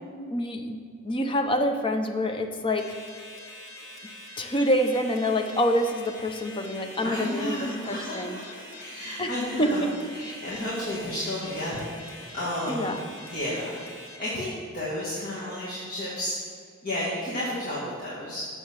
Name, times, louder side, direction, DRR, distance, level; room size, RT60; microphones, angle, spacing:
voice 1, 0.3-0.8 1.0-2.8 4.4-8.4 9.2-9.3 9.6-9.9 12.7-13.0, equal, 25° left, 5 dB, 0.6 m, -26 dB
sound 1, 2.8-14.2, left 2 dB, 60° left, 1.4 m, -44 dB
voice 2, 7.0-9.9 10.1-12.9 13.3-13.8 14.2-16.4 16.8-18.4, left 1 dB, 45° left, -8 dB, 2.0 m, -32 dB
6.9 x 6.6 x 7.2 m, 2.1 s
head